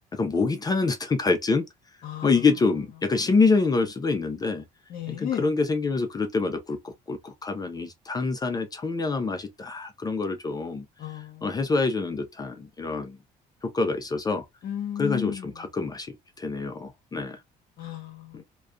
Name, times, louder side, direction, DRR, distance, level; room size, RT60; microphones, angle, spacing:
voice 1, 0.1-1.6 2.2-4.6 5.1-10.9 11.4-13.2 13.6-14.4 15.0-17.4, left 4 dB, 25° left, 0.4 m, -26 dB
voice 2, 4.9-5.5 11.0-11.5 14.6-15.5 17.8-18.4, left 10 dB, 60° left, 0.7 m, -33 dB
2.3 x 2.2 x 2.4 m
cardioid pair, 110°, 17 cm